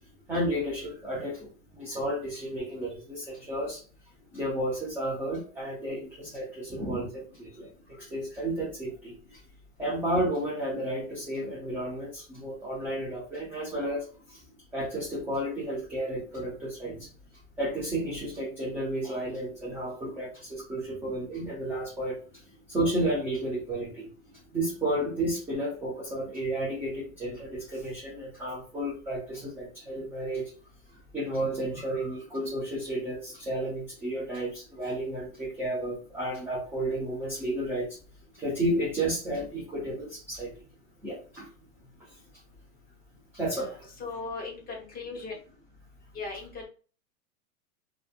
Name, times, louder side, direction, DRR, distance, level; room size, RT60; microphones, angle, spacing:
voice 1, 0.3-3.8 4.3-9.4 9.8-14.4 14.7-17.1 17.6-22.2 22.7-24.1 24.5-30.5 31.1-37.9 38.3-40.5 41.0-41.5 43.3-43.7, right 1 dB, 5° right, -7 dB, 0.3 m, -32 dB
voice 2, 43.5-45.4 46.1-46.6, left 4 dB, 20° left, -1 dB, 0.9 m, -38 dB
2.5 x 2.2 x 2.4 m, 0.38 s
hypercardioid pair, 130°, 43 cm